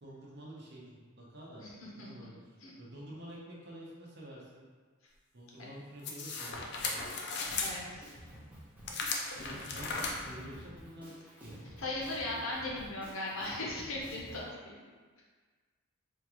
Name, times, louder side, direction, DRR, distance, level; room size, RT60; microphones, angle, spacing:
voice 1, 0.0-1.7 1.9-2.4 2.8-4.6 5.3-6.9 9.3-11.7, right 1 dB, 50° right, -5 dB, 0.8 m, -49 dB
voice 2, 1.6-2.1 2.6-2.7 7.6-8.1 11.8-14.8, left 2 dB, 70° left, -4 dB, 0.8 m, -38 dB
sound 1, 6.0-7.7 8.9-10.1, left 4 dB, 50° left, 0.4 m, -36 dB
Drum kit, 6.5-14.5, equal, 5° right, 0.6 m, -51 dB
4.4 x 2.4 x 3.0 m, 1.5 s
head